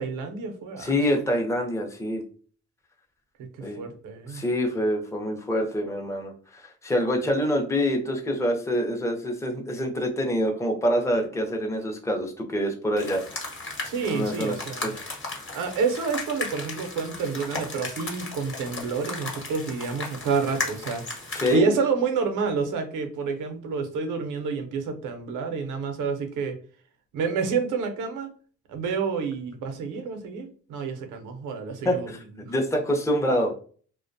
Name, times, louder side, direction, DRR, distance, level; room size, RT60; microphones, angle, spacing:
voice 1, 0.0-1.0 3.8-4.4 13.8-14.9 15.5-21.0 21.5-26.6 27.1-28.3 28.7-32.1 32.4-32.5, right 5 dB, 85° right, 6 dB, 0.7 m, -29 dB
voice 2, 0.8-2.2 3.6-3.8 4.3-13.3 14.0-14.5 14.8-15.0 21.4-21.7 31.8-32.2 32.5-33.6, equal, 10° left, 2 dB, 0.5 m, -26 dB
sound 1, 13.0-21.6, left 3 dB, 40° left, 0.9 m, -35 dB
2.4 x 2.1 x 2.6 m, 0.43 s
cardioid pair, 90°, 30 cm